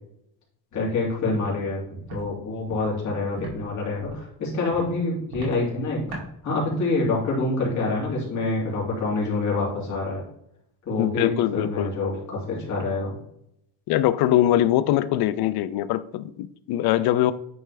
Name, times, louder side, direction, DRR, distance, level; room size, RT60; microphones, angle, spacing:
voice 1, 0.7-1.8 2.1-6.0 6.4-10.2 10.9-13.1, left 3 dB, 45° left, 2.5 m, -26 dB
Walk footsteps, 1.4-1.5 2.0-2.2 2.7-2.8 3.4-3.5 4.0-4.2 4.7-4.9 5.3-5.5 6.1-6.2, right 2 dB, 70° right, 2.3 m, -36 dB
voice 2, 11.0-11.9 13.9-17.3, left 13 dB, 70° left, 0.5 m, -22 dB
9.5 x 3.3 x 3.3 m
cardioid pair, 160°, 40 cm